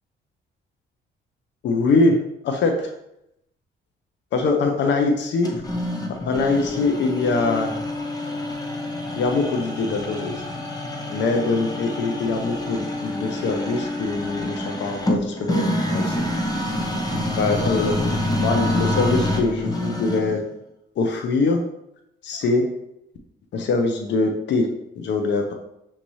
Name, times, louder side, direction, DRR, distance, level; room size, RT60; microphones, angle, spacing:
voice 1, 1.6-2.2 2.4-2.9 4.3-5.5 6.3-7.8 9.2-10.4 11.1-16.2 17.4-20.4 21.0-21.6 22.2-22.6 23.5-24.7 25.0-25.5, left 3 dB, 65° left, 4 dB, 0.6 m, -23 dB
sound 1, 5.4-20.4, left 1 dB, 20° left, 0.7 m, -27 dB
5.8 x 2.7 x 3.0 m, 0.82 s
cardioid pair, 90°, 20 cm